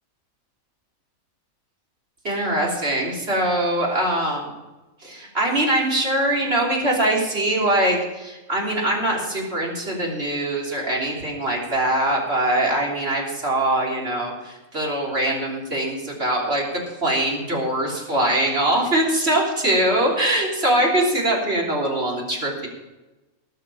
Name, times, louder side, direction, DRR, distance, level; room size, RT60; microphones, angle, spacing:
voice 1, 2.2-4.5 5.0-22.7, right 1 dB, 50° right, -3 dB, 3.5 m, -22 dB
18.5 x 6.7 x 5.6 m, 1.1 s
omnidirectional pair, 1.4 m